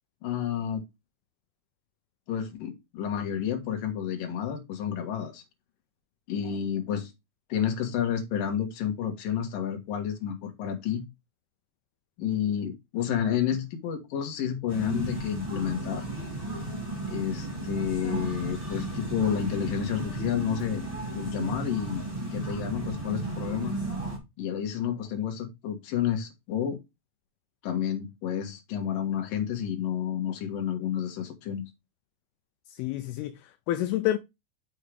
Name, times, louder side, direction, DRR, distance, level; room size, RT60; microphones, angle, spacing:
voice 1, 0.2-0.8 2.3-5.4 6.3-7.1 7.5-11.0 12.2-16.0 17.1-20.8 21.1-22.0 22.3-23.8 24.4-26.8 27.6-31.6, left 9 dB, 60° left, 2.9 m, -30 dB
sound 1, 14.7-24.2, right 2 dB, 10° right, 1.9 m, -34 dB
voice 2, 32.7-34.2, left 14 dB, 80° left, 2.3 m, -29 dB
6.7 x 6.4 x 3.4 m
omnidirectional pair, 4.9 m